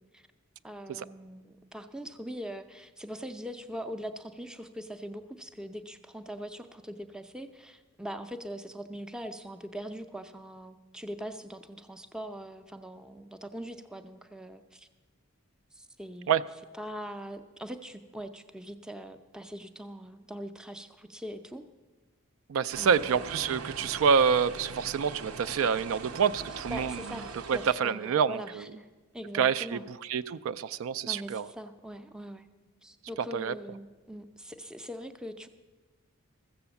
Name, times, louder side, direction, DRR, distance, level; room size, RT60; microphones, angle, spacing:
voice 1, 0.6-14.9 15.7-16.3 16.7-21.6 22.8-23.3 26.7-28.9 29.1-29.9 31.0-32.5 32.8-35.5, equal, 5° right, 7 dB, 0.4 m, -42 dB
voice 2, 22.5-27.0 27.5-28.6 29.3-29.8 30.1-31.5 33.3-33.5, right 6 dB, 75° right, 15 dB, 0.3 m, -27 dB
sound 1, 22.7-27.7, right 3 dB, 90° right, 0.9 m, -42 dB
14.0 x 7.8 x 7.0 m, 1.3 s
head